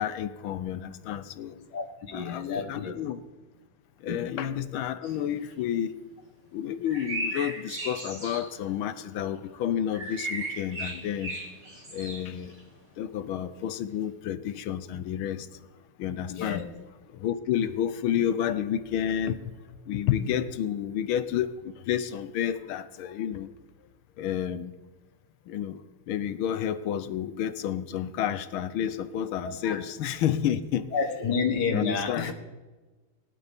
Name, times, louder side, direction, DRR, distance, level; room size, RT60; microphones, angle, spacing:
voice 1, 0.0-1.5 2.1-3.2 4.0-6.0 6.5-11.4 11.9-12.6 13.0-15.5 16.0-19.4 19.9-23.5 24.2-24.7 25.5-30.9 31.7-32.3, left 10 dB, 75° left, 12 dB, 1.5 m, -30 dB
voice 2, 1.5-2.9 4.1-4.2 16.3-16.6 29.4-29.8 30.9-32.3, left 5 dB, 55° left, 5 dB, 1.7 m, -30 dB
sound 1, 5.0-5.1 5.5-5.6 6.9-8.5 9.9-12.6, right 1 dB, 50° right, 4.5 m, -36 dB
19.0 x 11.0 x 3.5 m, 1.2 s
omnidirectional pair, 2.4 m